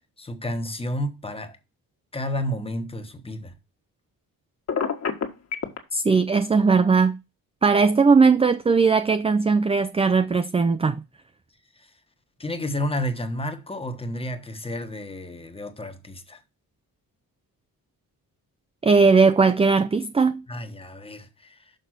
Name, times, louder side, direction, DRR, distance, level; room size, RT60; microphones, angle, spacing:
voice 1, 0.2-1.6 2.1-3.5 11.8-11.9 12.4-16.4 20.5-21.7, left 1 dB, 15° left, 1.2 m, -31 dB
Telephone, 4.7-5.8, left 6 dB, 45° left, 1.7 m, -26 dB
voice 2, 5.9-7.2 7.6-11.0 18.8-20.4, right 4 dB, 15° right, 0.4 m, -19 dB
6.7 x 5.1 x 6.1 m
wide cardioid pair, 140°, 36 cm